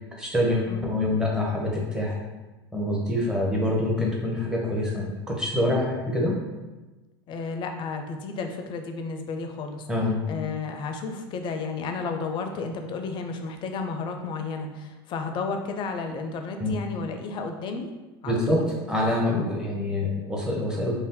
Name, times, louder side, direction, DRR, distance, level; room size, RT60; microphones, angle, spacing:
voice 1, 0.2-2.1 2.7-6.4 9.9-10.2 16.6-16.7 18.2-18.6 18.9-21.0, left 1 dB, 5° right, -3 dB, 0.8 m, -25 dB
voice 2, 7.3-9.9 10.3-17.9 18.2-18.7, left 4 dB, 40° left, 5 dB, 0.4 m, -32 dB
2.6 x 2.0 x 3.7 m, 1.2 s
hypercardioid pair, 90°, 13 cm